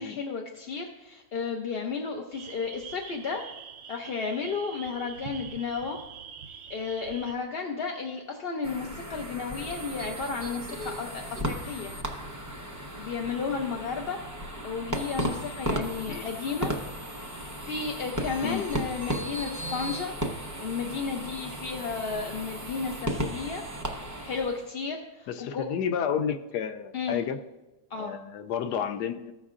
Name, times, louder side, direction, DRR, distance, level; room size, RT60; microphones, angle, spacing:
voice 1, 0.0-3.4 3.9-6.0 6.7-11.9 13.0-14.2 14.6-16.7 17.7-20.1 20.6-23.6 24.2-25.6 26.9-27.2 27.9-28.2, left 5 dB, 55° left, 2 dB, 0.6 m, -33 dB
sound 1, 2.3-7.3, right 7 dB, 75° right, 0.6 m, -44 dB
sound 2, 8.6-24.7, equal, 20° right, 0.5 m, -35 dB
voice 2, 25.3-27.4 28.0-29.3, left 8 dB, 85° left, 8 dB, 1.2 m, -31 dB
15.0 x 6.4 x 2.5 m, 1.1 s
omnidirectional pair, 1.7 m